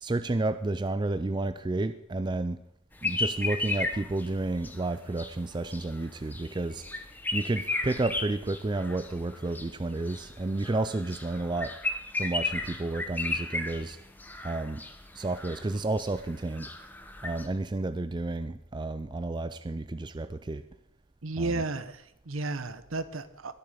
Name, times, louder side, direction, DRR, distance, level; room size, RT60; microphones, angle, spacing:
voice 1, 0.0-2.6 3.0-6.9 7.3-11.8 12.2-14.0 14.4-14.9 15.1-16.7 17.2-20.6 21.4-21.6, right 2 dB, 20° right, 11 dB, 0.4 m, -31 dB
Red whiskered bulbul, 3.0-17.5, left 2 dB, 10° left, 0.9 m, -35 dB
voice 2, 21.2-23.6, right 2 dB, 75° right, 13 dB, 1.0 m, -33 dB
20.5 x 7.1 x 5.0 m, 0.75 s
head